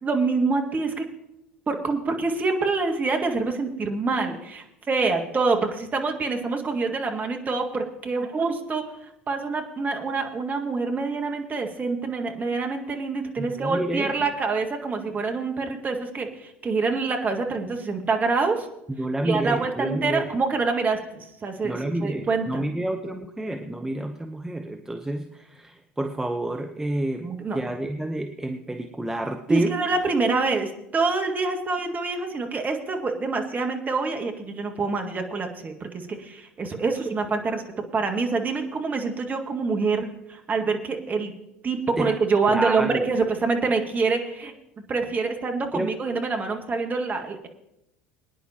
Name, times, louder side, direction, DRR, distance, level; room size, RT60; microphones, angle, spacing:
voice 1, 0.0-1.1 1.7-8.8 9.3-18.7 19.2-22.6 27.2-27.6 29.5-35.9 36.2-41.3 41.6-44.5 44.9-47.5, right 4 dB, 25° right, 3 dB, 1.9 m, -26 dB
voice 2, 13.4-14.3 18.9-20.3 21.6-29.8 42.0-42.1 42.5-43.1 45.7-45.9, right 1 dB, 5° right, 5 dB, 0.9 m, -29 dB
23.0 x 10.0 x 2.9 m, 0.86 s
figure-of-eight pair, 70°, 7 cm